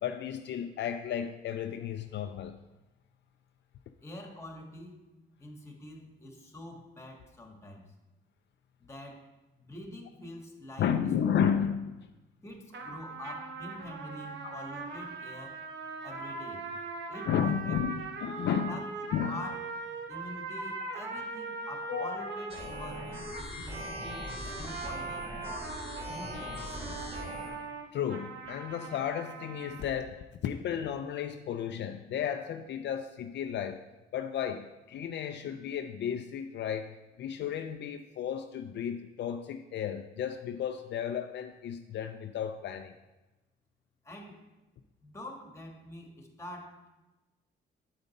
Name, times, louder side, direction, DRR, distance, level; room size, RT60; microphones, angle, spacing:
voice 1, 0.0-2.6 10.8-12.1 14.4-14.5 17.3-18.8 19.1-19.4 21.9-22.3 23.5-24.0 24.2-24.9 27.9-33.8 34.1-42.9, left 8 dB, 60° left, 6 dB, 0.5 m, -33 dB
voice 2, 4.0-5.0 5.4-7.9 8.8-9.2 9.6-10.9 12.4-15.6 16.0-16.6 17.1-17.7 18.6-18.9 19.3-19.6 20.1-25.8 26.1-27.1 44.0-44.4 45.0-46.9, left 1 dB, 15° left, 2 dB, 1.5 m, -46 dB
sound 1, 12.7-29.9, right 3 dB, 65° right, 1.1 m, -40 dB
sound 2, 22.5-27.5, equal, 30° right, 2.7 m, -42 dB
8.6 x 5.2 x 4.1 m, 1.1 s
cardioid pair, 90°, 20 cm